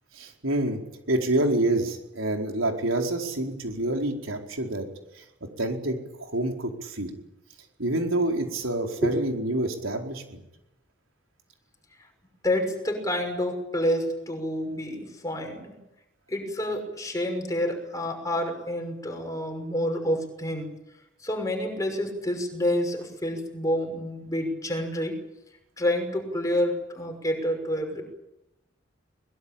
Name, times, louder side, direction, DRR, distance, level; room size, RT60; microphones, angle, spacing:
voice 1, 0.1-0.8 1.1-4.9 5.6-7.1 7.8-10.4, right 1 dB, 85° right, 2 dB, 4.6 m, -27 dB
voice 2, 12.4-15.8 16.3-20.7 21.2-25.2 25.8-28.0, left 1 dB, 15° left, 3 dB, 6.0 m, -28 dB
23.0 x 21.5 x 8.9 m, 0.91 s
head